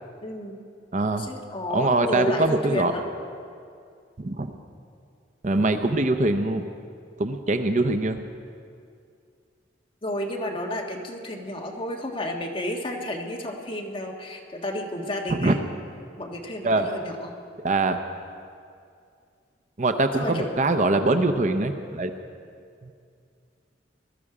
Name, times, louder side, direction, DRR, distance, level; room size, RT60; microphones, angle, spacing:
voice 1, 0.2-0.6 1.1-3.0 10.0-15.6 16.2-17.3 20.1-20.5, left 1 dB, 30° left, 0 dB, 1.4 m, -31 dB
voice 2, 0.9-1.3 1.7-2.9 4.2-4.5 5.4-6.6 7.2-8.2 15.3-15.5 16.6-16.9 17.6-18.0 19.8-22.1 22.8-22.9, right 2 dB, 40° right, 7 dB, 0.7 m, -23 dB
20.5 x 12.5 x 4.9 m, 2.4 s
head